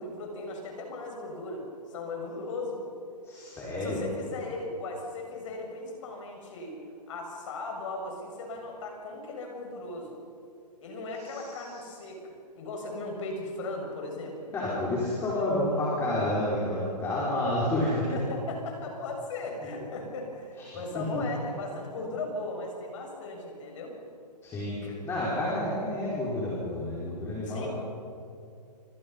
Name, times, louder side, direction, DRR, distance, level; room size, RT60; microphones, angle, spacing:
voice 1, 0.0-3.0 3.6-6.8 7.1-10.1 10.8-14.8 15.3-15.8 18.1-24.0 24.8-25.0 27.4-27.7, left 2 dB, 45° left, 1 dB, 7.1 m, -37 dB
voice 2, 3.2-4.0 11.2-11.6 14.5-18.1 20.7-21.2 24.4-27.7, left 1 dB, 10° left, -7 dB, 5.6 m, -30 dB
29.0 x 26.0 x 5.7 m, 2.6 s
hypercardioid pair, 155°, 21 cm